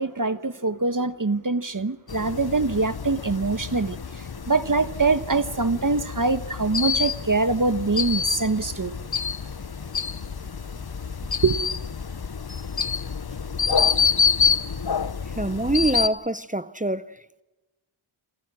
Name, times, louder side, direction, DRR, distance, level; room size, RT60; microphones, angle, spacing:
voice 1, 0.0-8.9 11.4-11.6, right 3 dB, 40° right, 1.3 m, -24 dB
sound 1, 2.1-16.1, left 6 dB, 50° left, 1.0 m, -27 dB
voice 2, 15.3-17.4, right 1 dB, 15° right, 0.8 m, -26 dB
29.0 x 27.5 x 6.3 m
wide cardioid pair, 65°, 49 cm